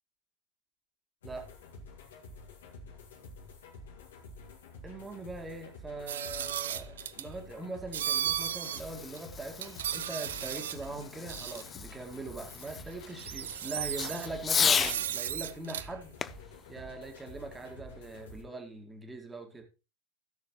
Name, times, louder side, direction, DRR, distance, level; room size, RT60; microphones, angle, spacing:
sound 1, 1.2-18.4, left 2 dB, 60° left, 2.4 m, -50 dB
voice 1, 4.8-16.2 16.7-19.6, right 3 dB, 10° right, 2.1 m, -42 dB
sound 2, 6.1-7.3 7.9-8.8 9.1-9.2 9.6-10.9 11.3-11.6 12.6-12.7 13.1-14.3 14.8-15.9, right 10 dB, 60° right, 0.6 m, -35 dB
Fireworks, 7.8-15.0 16.2-17.8, left 7 dB, 20° left, 0.5 m, -35 dB
16.5 x 6.9 x 3.2 m
figure-of-eight pair, 90°, 0 cm